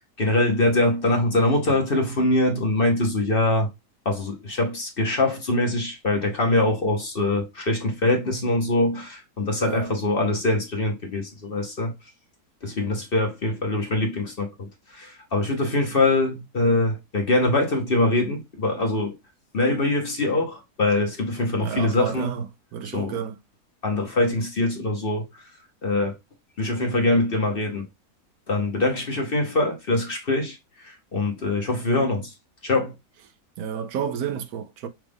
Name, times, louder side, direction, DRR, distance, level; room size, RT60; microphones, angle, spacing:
voice 1, 0.2-3.7 4.0-11.9 12.6-19.1 19.5-22.4 22.9-23.2 23.8-25.3 25.8-26.1 26.6-27.9 28.5-30.6 30.8-32.3 32.6-32.9, left 2 dB, 40° left, 1.0 m, -23 dB
voice 2, 9.6-10.0 21.6-22.5 22.7-23.3 33.6-34.9, right 7 dB, 75° right, 1.1 m, -30 dB
6.1 x 2.4 x 3.4 m
omnidirectional pair, 1.7 m